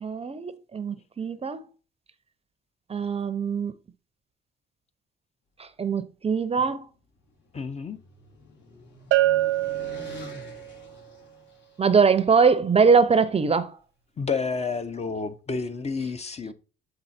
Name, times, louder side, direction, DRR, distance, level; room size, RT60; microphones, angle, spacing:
voice 1, 0.0-1.6 2.9-3.7 5.6-6.9 11.8-13.7, right 5 dB, 30° right, 0.6 m, -22 dB
sound 1, 6.8-12.1, left 3 dB, 65° left, 3.1 m, -47 dB
voice 2, 7.5-8.0 14.2-16.5, left 4 dB, 35° left, 0.8 m, -30 dB
Bell, 9.1-10.7, right 15 dB, 80° right, 0.4 m, -24 dB
7.9 x 3.9 x 4.2 m
cardioid pair, 90°, 20 cm